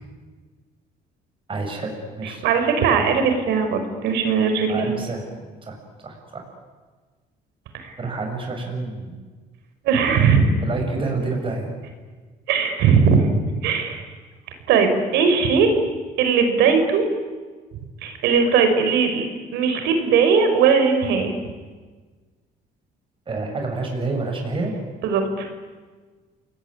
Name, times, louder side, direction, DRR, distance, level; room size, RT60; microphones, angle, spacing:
voice 1, 1.5-2.4 4.6-5.2 5.7-5.8 6.0-6.4 8.0-9.1 10.6-11.7 23.3-24.7, right 3 dB, 30° right, 2 dB, 6.6 m, -28 dB
voice 2, 2.4-4.9 7.7-7.9 9.8-10.5 12.5-13.3 13.6-14.0 14.7-15.7 16.2-17.1 18.0-19.2 19.5-21.3 25.0-25.5, right 6 dB, 85° right, 6 dB, 5.4 m, -19 dB
29.5 x 20.5 x 9.8 m, 1.4 s
cardioid pair, 110°, 17 cm